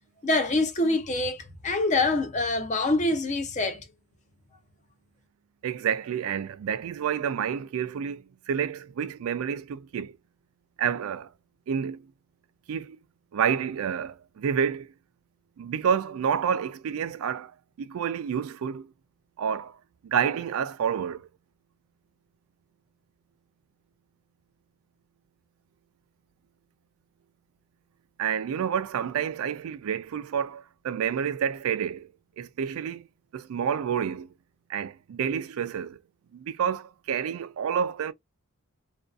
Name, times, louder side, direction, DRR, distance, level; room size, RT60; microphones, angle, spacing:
voice 1, 0.2-3.8, left 2 dB, 35° left, 0.5 m, -25 dB
voice 2, 5.6-10.2 10.8-11.3 11.7-12.1 12.7-13.0 13.3-14.9 15.6-17.5 17.8-18.9 19.4-19.8 20.0-21.3 28.2-32.1 32.4-33.1 33.3-34.3 34.7-36.0 36.3-38.1, right 8 dB, 80° right, 0.3 m, -29 dB
2.5 x 2.3 x 2.3 m
head